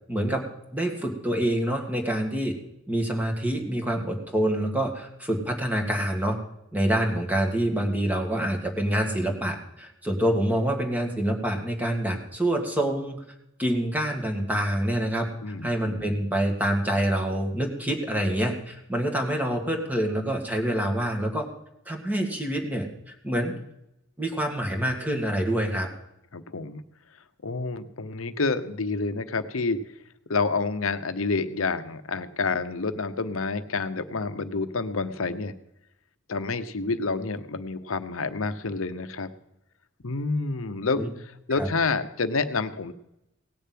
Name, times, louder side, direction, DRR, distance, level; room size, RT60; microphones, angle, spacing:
voice 1, 0.1-2.6 2.9-6.4 6.7-13.2 13.6-15.3 15.6-21.5 21.9-23.5 24.2-25.9 41.0-41.1 41.5-41.7, right 1 dB, 10° right, 2 dB, 1.9 m, -26 dB
voice 2, 15.4-16.0 26.3-26.8 27.4-29.8 30.3-35.5 36.3-39.3 40.0-42.9, left 4 dB, 80° left, 10 dB, 0.9 m, -28 dB
18.0 x 6.9 x 7.6 m, 0.85 s
head